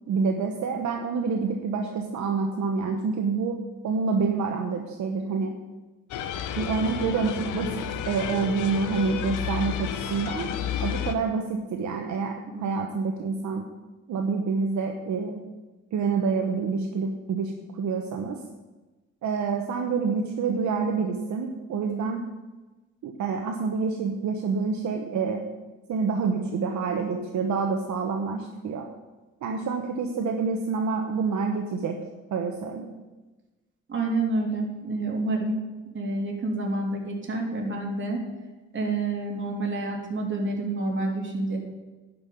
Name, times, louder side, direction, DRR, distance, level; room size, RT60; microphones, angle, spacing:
voice 1, 0.1-3.6 3.8-5.5 6.6-10.5 10.8-13.6 14.1-15.4 15.9-18.4 19.2-22.2 23.0-25.4 25.9-28.8 29.4-32.0 32.3-32.9, right 5 dB, 70° right, 3 dB, 1.2 m, -27 dB
sound 1, 6.1-11.1, left 9 dB, 85° left, 0.9 m, -31 dB
voice 2, 33.9-35.6 35.9-38.3 38.7-41.6, right 2 dB, 40° right, -1 dB, 3.3 m, -28 dB
11.0 x 5.7 x 8.6 m, 1.2 s
cardioid pair, 90°, 30 cm